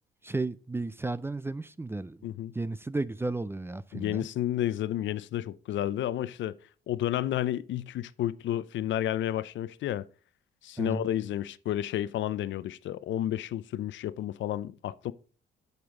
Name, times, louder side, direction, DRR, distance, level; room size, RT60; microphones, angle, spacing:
voice 1, 0.2-2.3 2.5-4.3 10.8-11.1, right 2 dB, 10° right, 0.4 m, -33 dB
voice 2, 2.2-2.5 3.9-6.6 6.9-10.1 10.6-15.1, left 12 dB, 70° left, 0.5 m, -31 dB
8.0 x 7.0 x 3.7 m
cardioid pair, 90°, 20 cm